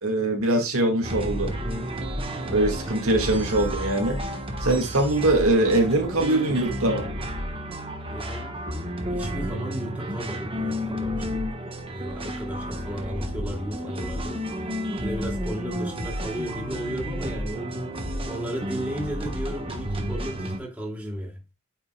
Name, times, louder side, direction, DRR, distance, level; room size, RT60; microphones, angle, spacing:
voice 1, 0.0-1.5 2.5-4.2 4.6-7.1, right 2 dB, 80° right, 1.9 m, -22 dB
sound 1, 1.0-20.6, equal, 25° right, 1.2 m, -31 dB
voice 2, 8.1-8.7 9.0-14.7 15.0-17.8 18.3-21.4, equal, 5° right, 2.3 m, -34 dB
8.8 x 5.3 x 2.2 m
head